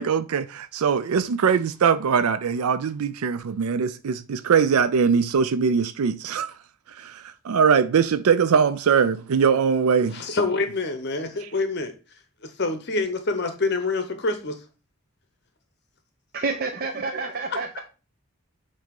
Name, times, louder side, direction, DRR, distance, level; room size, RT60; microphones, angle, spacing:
voice 1, 0.0-6.5 6.9-10.2, right 6 dB, 85° right, 0.4 m, -21 dB
voice 2, 10.1-14.6 17.7-17.8, left 3 dB, 50° left, 0.7 m, -27 dB
voice 3, 16.3-17.8, right 3 dB, 40° right, 0.7 m, -29 dB
7.8 x 2.8 x 5.2 m
head